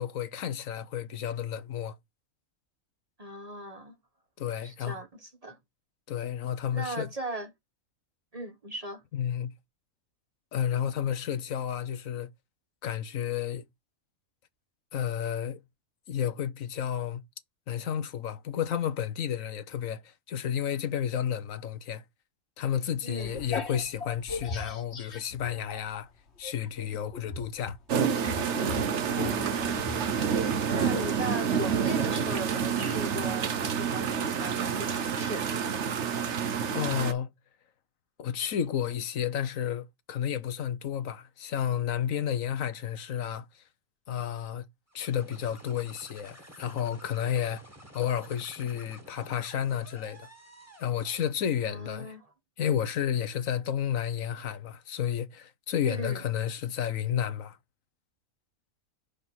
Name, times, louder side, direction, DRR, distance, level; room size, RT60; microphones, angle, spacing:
voice 1, 0.0-2.0 4.4-5.0 6.1-7.1 9.1-9.5 10.5-12.3 12.8-13.6 14.9-15.6 16.1-17.2 17.7-22.0 22.6-26.1 26.4-27.8 36.7-37.3 38.2-43.6 44.1-44.7 44.9-47.6 47.9-50.3 50.8-52.1 52.6-57.6, left 9 dB, 75° left, 1.2 m, -31 dB
voice 2, 3.2-3.9 4.6-5.6 6.7-7.5 8.3-9.0 23.0-23.3 29.1-29.9 30.7-35.5 51.6-52.3 55.8-56.2, right 2 dB, 30° right, 1.0 m, -38 dB
sound 1, 23.2-26.0 26.4-31.2, left 3 dB, 55° left, 1.6 m, -39 dB
sound 2, 27.9-37.1, right 7 dB, 60° right, 1.1 m, -28 dB
sound 3, 44.9-51.4, equal, 10° right, 1.7 m, -52 dB
5.5 x 5.1 x 6.2 m
omnidirectional pair, 1.4 m